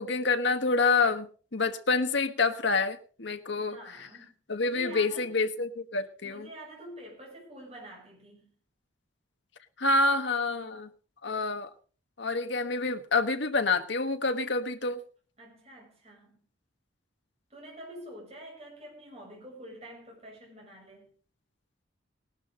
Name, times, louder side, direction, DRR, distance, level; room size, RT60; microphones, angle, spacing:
voice 1, 0.0-3.8 4.5-6.5 9.8-10.9 11.2-11.7 12.2-15.0, left 3 dB, 55° left, 1.3 m, -27 dB
voice 2, 3.7-5.3 6.2-8.5 15.4-16.5 17.5-21.1, right 1 dB, 30° right, 7.1 m, -47 dB
18.5 x 12.0 x 3.8 m
head